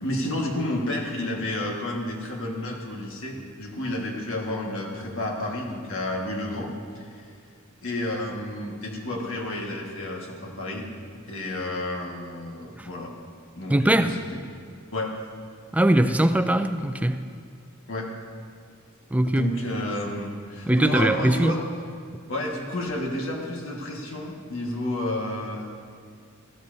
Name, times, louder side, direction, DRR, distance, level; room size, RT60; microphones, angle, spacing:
voice 1, 0.0-7.3 7.8-10.9 11.3-13.1 13.6-14.4 14.9-15.1 17.9-18.1 19.2-21.6 22.3-25.7, left 1 dB, 65° left, 0 dB, 1.6 m, -31 dB
voice 2, 13.7-14.2 15.7-17.3 19.1-19.5 20.7-21.5, right 1 dB, 5° right, 9 dB, 0.4 m, -21 dB
14.0 x 13.5 x 2.7 m, 2.2 s
head